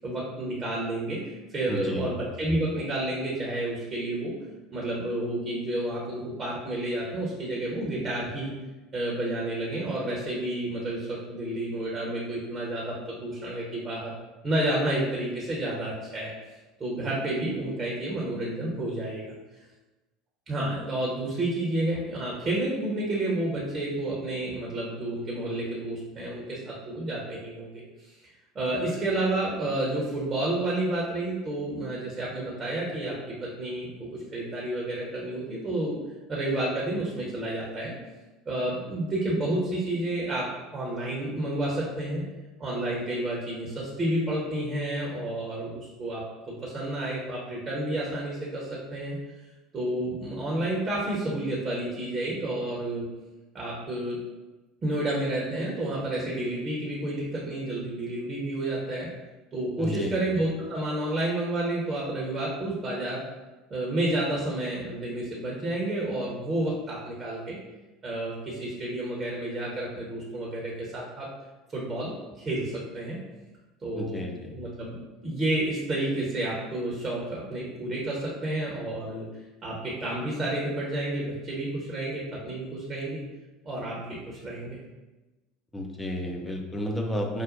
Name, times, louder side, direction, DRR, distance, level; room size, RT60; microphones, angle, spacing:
voice 1, 0.0-4.3 4.7-8.5 8.9-14.1 14.4-16.3 16.8-19.4 20.5-28.1 28.5-36.0 36.3-37.9 38.5-42.2 42.6-49.2 49.7-53.0 53.5-54.2 54.8-59.1 59.5-63.2 63.7-67.6 68.0-71.3 71.7-73.2 73.8-74.2 74.5-79.3 79.6-83.2 83.6-84.8, right 1 dB, 25° right, -5 dB, 0.9 m, -30 dB
voice 2, 1.7-2.1 59.8-60.2 73.9-74.6 85.7-87.4, equal, 15° left, 1 dB, 0.6 m, -32 dB
4.9 x 2.1 x 2.6 m, 1.1 s
figure-of-eight pair, 70°, 0 cm